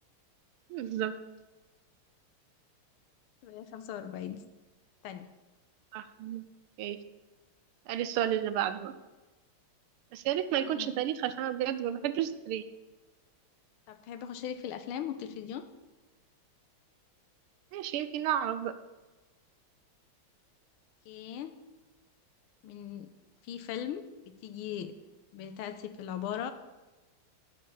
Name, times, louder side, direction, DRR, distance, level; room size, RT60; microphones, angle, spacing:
voice 1, 0.7-1.1 5.9-6.4 6.8-7.0 7.9-8.9 10.1-12.6 17.7-18.7, right 11 dB, 85° right, 12 dB, 1.5 m, -31 dB
voice 2, 3.4-4.4 5.0-5.3 10.6-10.9 13.9-15.7 21.1-21.5 22.6-23.1 23.4-24.0 24.4-24.9 25.3-26.5, left 9 dB, 85° left, 10 dB, 1.6 m, -39 dB
11.0 x 5.4 x 7.0 m, 1.2 s
omnidirectional pair, 2.3 m